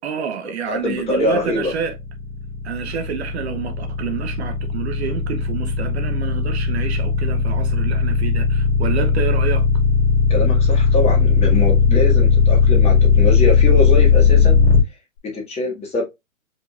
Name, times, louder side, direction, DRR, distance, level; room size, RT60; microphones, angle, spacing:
voice 1, 0.0-2.0 2.6-9.7, right 7 dB, 50° right, 0.8 m, -28 dB
voice 2, 0.7-1.7 10.3-14.6 15.2-16.0, left 2 dB, 15° left, 1.8 m, -23 dB
sound 1, 1.5-14.8, left 6 dB, 40° left, 2.1 m, -16 dB
5.0 x 3.7 x 2.5 m
hypercardioid pair, 135°, 42 cm